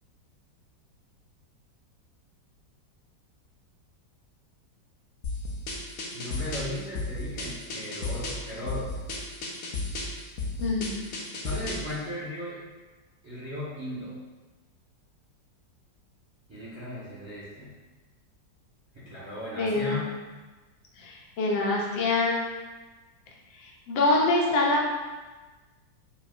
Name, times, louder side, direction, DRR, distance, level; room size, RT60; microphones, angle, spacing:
sound 1, 5.2-11.9, left 2 dB, 65° left, 0.9 m, -34 dB
voice 1, 6.1-9.0 11.4-12.6 13.2-14.2 16.5-17.7 18.9-20.1, left 1 dB, 20° right, -10 dB, 1.0 m, -36 dB
voice 2, 10.6-11.0 19.6-20.0 21.0-22.4 23.6-24.9, left 2 dB, 85° left, -2 dB, 1.4 m, -25 dB
5.0 x 2.7 x 2.5 m, 1.3 s
omnidirectional pair, 1.9 m